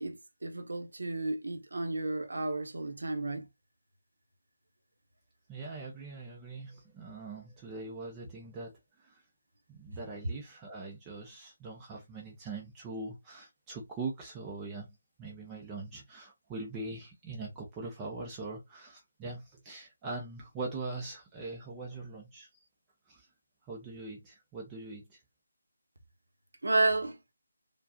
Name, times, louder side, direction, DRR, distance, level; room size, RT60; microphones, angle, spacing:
voice 1, 0.0-3.5 26.6-27.2, right 2 dB, 75° right, 1.0 m, -32 dB
voice 2, 5.5-8.7 9.0-9.2 9.7-22.5 23.1-23.3 23.7-25.2, right 3 dB, 15° right, 0.8 m, -42 dB
4.6 x 2.4 x 2.7 m
figure-of-eight pair, 160°, 0 cm